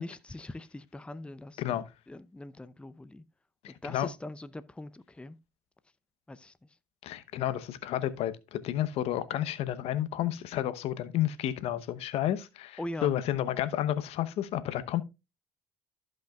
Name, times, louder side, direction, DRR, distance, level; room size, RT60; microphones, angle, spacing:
voice 1, 0.0-3.2 3.7-5.4 6.3-6.5 12.8-13.1, left 1 dB, 10° left, 0.6 m, -42 dB
voice 2, 3.6-4.1 7.0-15.0, left 12 dB, 70° left, 0.9 m, -31 dB
15.0 x 5.5 x 2.3 m
hypercardioid pair, 65°, 11 cm